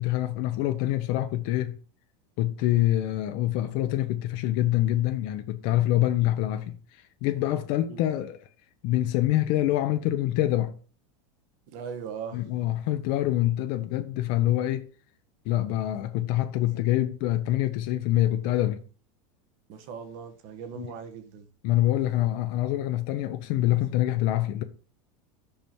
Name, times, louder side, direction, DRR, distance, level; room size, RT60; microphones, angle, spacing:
voice 1, 0.0-1.8 2.4-8.4 8.8-10.7 12.3-14.9 15.5-18.8 20.8-20.9 21.6-24.6, left 14 dB, 55° left, 0.6 m, -25 dB
voice 2, 11.7-12.4 19.7-21.5, right 7 dB, 55° right, 1.3 m, -39 dB
5.4 x 5.1 x 4.5 m
supercardioid pair, 135°, 17 cm